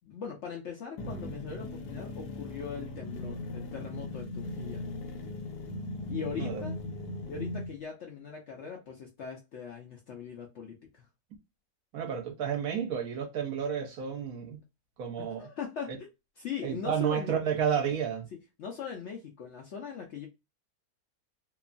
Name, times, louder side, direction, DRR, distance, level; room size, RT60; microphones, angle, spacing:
voice 1, 0.0-4.8 6.1-6.8 7.3-11.0 15.2-15.9 16.4-17.4 18.6-20.3, left 6 dB, 65° left, 0.7 m, -40 dB
sound 1, 1.0-7.7, left 2 dB, 90° left, 1.2 m, -38 dB
voice 2, 11.9-14.6 15.0-15.5 16.6-18.3, right 8 dB, 70° right, 1.1 m, -31 dB
2.9 x 2.2 x 2.4 m
omnidirectional pair, 1.7 m